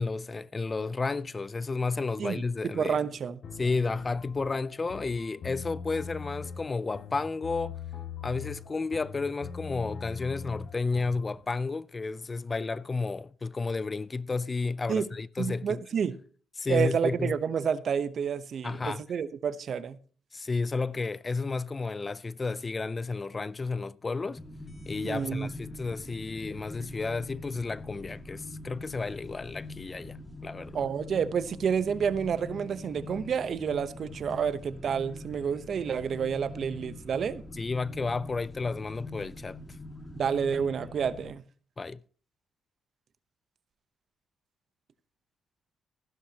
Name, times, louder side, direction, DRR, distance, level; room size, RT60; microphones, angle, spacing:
voice 1, 0.0-3.0 3.6-7.8 8.2-15.8 16.6-17.3 18.6-19.0 20.3-24.4 24.8-30.2 30.4-30.8 37.6-39.6 41.8-42.0, left 4 dB, 30° left, 0.4 m, -32 dB
voice 2, 2.2-3.4 14.9-15.1 15.4-16.2 16.7-20.0 25.0-25.5 30.7-37.4 40.1-41.4, right 7 dB, 55° right, 0.8 m, -29 dB
sound 1, 3.4-11.3, left 6 dB, 60° left, 2.1 m, -41 dB
sound 2, 24.4-41.3, left 2 dB, 10° left, 1.8 m, -44 dB
14.5 x 12.0 x 2.9 m
cardioid pair, 90°, 0 cm